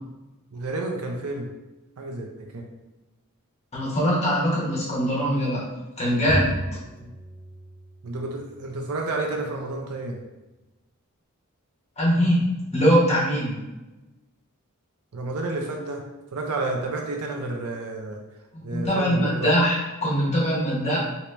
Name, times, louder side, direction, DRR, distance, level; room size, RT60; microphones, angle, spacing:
voice 1, 0.5-1.5 2.0-2.7 7.0-7.1 8.0-10.2 15.1-16.1 16.3-18.2 18.6-19.5, right 2 dB, 75° right, 1 dB, 0.5 m, -30 dB
voice 2, 3.7-5.7 6.0-6.5 12.0-12.5 12.7-13.5 18.5-21.0, equal, 30° left, -6 dB, 1.1 m, -22 dB
Bowed string instrument, 6.3-8.8, right 1 dB, 5° left, 0.5 m, -33 dB
2.9 x 2.8 x 3.3 m, 1.1 s
head